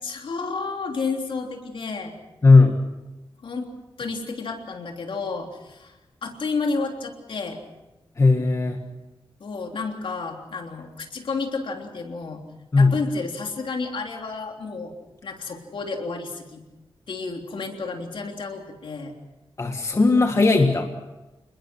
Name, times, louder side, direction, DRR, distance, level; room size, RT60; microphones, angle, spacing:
voice 1, 0.0-2.1 3.4-3.7 4.0-6.0 6.2-7.6 9.4-12.4 12.8-14.9 15.2-16.6 17.1-19.1, left 4 dB, 65° left, 2 dB, 3.4 m, -31 dB
voice 2, 2.4-2.8 8.2-8.8 12.7-12.9 19.6-20.9, left 3 dB, 35° left, 4 dB, 1.8 m, -17 dB
27.5 x 21.5 x 6.2 m, 1.0 s
wide cardioid pair, 150°, 9 cm